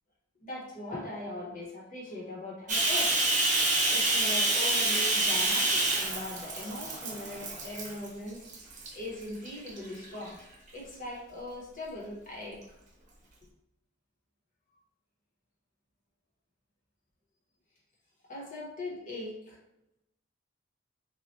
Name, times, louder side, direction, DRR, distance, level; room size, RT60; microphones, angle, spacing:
voice 1, 0.4-3.1 3.9-8.4 8.9-10.4 10.7-12.6 18.3-19.6, left 1 dB, 40° left, -4 dB, 1.1 m, -40 dB
Bathtub (filling or washing), 2.7-8.1 8.5-8.9 9.4-10.3, right 2 dB, 40° right, 0.8 m, -27 dB
3.1 x 2.4 x 4.2 m, 0.85 s
head